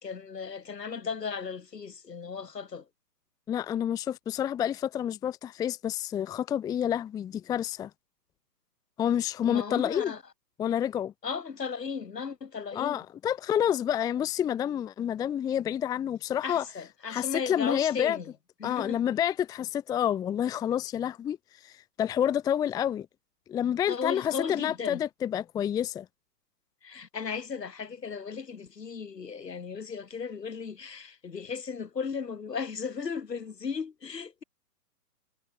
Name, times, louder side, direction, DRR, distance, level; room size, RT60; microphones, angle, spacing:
voice 1, 0.0-2.9 9.4-10.2 11.2-13.0 16.4-18.3 18.6-19.1 23.9-25.0 26.8-34.4, left 6 dB, 80° left, 5.5 m, -36 dB
voice 2, 3.5-7.9 9.0-10.1 10.6-11.1 12.7-16.6 17.1-18.2 18.6-23.1 23.5-26.1, left 10 dB, 10° left, 0.8 m, -29 dB
hypercardioid pair, 135°, 48 cm